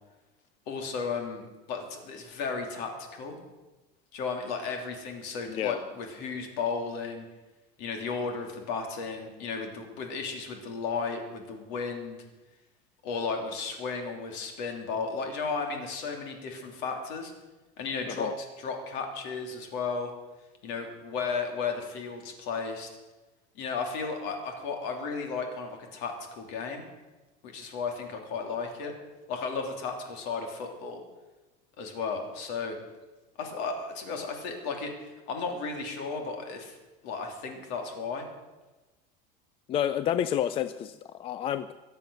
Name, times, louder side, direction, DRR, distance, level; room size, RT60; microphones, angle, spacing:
voice 1, 0.7-1.4 1.7-3.4 4.1-7.2 7.8-12.2 13.0-17.3 17.8-20.1 20.6-22.9 23.5-26.8 27.4-28.9 29.3-31.0 31.8-32.8 33.4-36.8 37.0-38.3, left 4 dB, 60° left, 3 dB, 3.2 m, -34 dB
voice 2, 5.5-5.8 18.1-18.3 39.7-41.7, left 10 dB, 30° left, 13 dB, 0.4 m, -29 dB
23.0 x 8.2 x 6.5 m, 1.1 s
cardioid pair, 165°, 20 cm